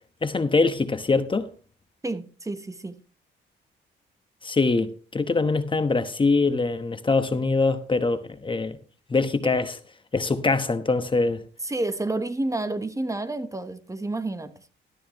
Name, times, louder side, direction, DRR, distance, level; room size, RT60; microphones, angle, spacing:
voice 1, 0.2-1.5 4.4-8.8 9.1-9.8 10.1-11.4, left 3 dB, 25° left, 1.0 m, -23 dB
voice 2, 2.0-3.0 9.4-9.5 11.6-14.5, right 2 dB, 15° right, 1.0 m, -29 dB
13.0 x 12.5 x 3.0 m
cardioid pair, 90°, 20 cm